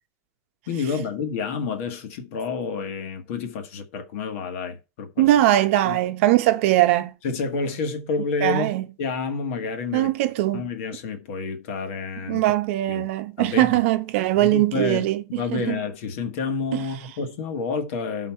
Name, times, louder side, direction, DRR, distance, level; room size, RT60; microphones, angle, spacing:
voice 1, 0.7-5.3 5.8-6.0 7.2-10.1 10.5-12.4 12.9-13.1 13.4-13.8 14.3-18.3, left 4 dB, 55° left, 1.4 m, -29 dB
voice 2, 5.2-7.1 8.4-8.9 9.9-10.6 12.3-15.8 16.7-16.8, right 15 dB, 55° right, 0.8 m, -21 dB
11.5 x 4.0 x 4.4 m
supercardioid pair, 160°, 9 cm